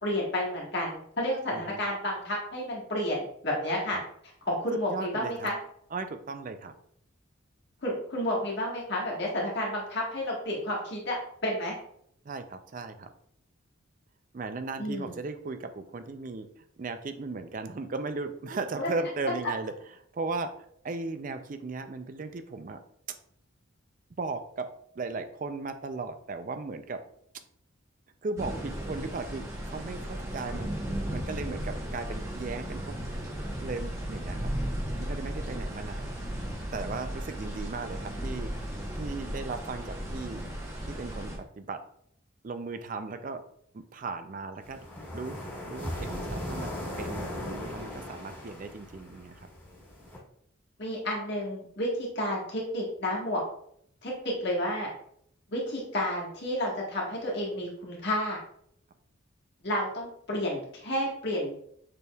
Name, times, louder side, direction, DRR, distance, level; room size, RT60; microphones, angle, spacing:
voice 1, 0.0-4.0 4.5-5.5 7.8-11.2 11.4-11.7 14.8-15.1 18.8-18.9 50.8-53.4 54.0-54.9 55.5-58.4 59.6-61.5, left 1 dB, 55° left, -3 dB, 1.5 m, -31 dB
voice 2, 4.9-5.5 5.9-6.7 12.2-13.1 14.3-19.7 20.1-20.5 20.8-22.8 24.2-24.7 25.0-27.0 28.2-30.7 31.1-33.0 33.6-34.5 35.0-36.2 36.7-38.5 39.0-40.5 40.9-41.8 42.4-43.4 43.7-44.8 45.1-46.7 47.0-49.5, right 3 dB, 40° right, 9 dB, 0.4 m, -36 dB
sound 1, 28.4-41.4, equal, 15° right, 0.8 m, -35 dB
sound 2, 44.6-50.2, left 1 dB, 10° left, 1.3 m, -38 dB
6.7 x 3.4 x 2.3 m, 0.68 s
head